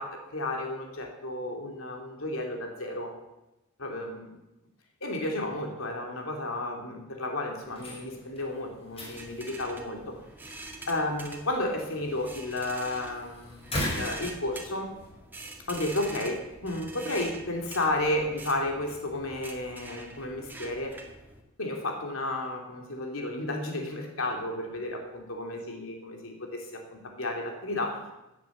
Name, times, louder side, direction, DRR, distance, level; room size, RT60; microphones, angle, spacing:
voice 1, 0.0-3.1 3.8-4.4 5.0-10.2 10.9-14.9 15.7-21.0 21.6-28.0, left 1 dB, 80° left, 2 dB, 2.9 m, -32 dB
sound 1, 7.6-15.1, equal, 30° left, 5.7 m, -40 dB
sound 2, 9.2-21.4, right 2 dB, 10° right, 2.1 m, -45 dB
16.5 x 9.2 x 7.3 m, 0.95 s
head